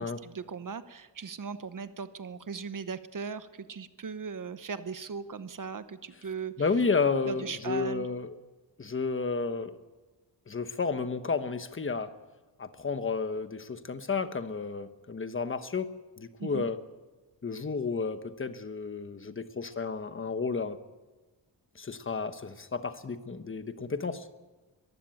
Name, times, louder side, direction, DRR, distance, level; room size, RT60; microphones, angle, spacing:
voice 1, 0.0-6.5 7.3-8.1 16.4-16.7, right 5 dB, 50° right, 12 dB, 0.9 m, -38 dB
voice 2, 6.6-8.3 8.8-9.8 10.5-12.1 12.6-16.8 17.4-20.8 21.8-24.3, left 4 dB, 30° left, 10 dB, 1.1 m, -32 dB
22.0 x 15.5 x 9.1 m, 1.2 s
wide cardioid pair, 175°, 42 cm